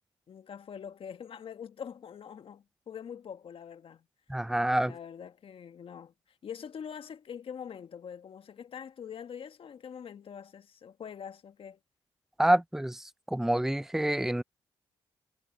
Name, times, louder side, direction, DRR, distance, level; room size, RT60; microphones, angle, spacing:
voice 1, 0.3-4.0 4.9-6.1 6.4-11.8, left 7 dB, 60° left, 1.5 m, -44 dB
voice 2, 4.3-4.9 12.4-14.4, right 1 dB, 5° right, 0.5 m, -27 dB
supercardioid pair, 55°, 10 cm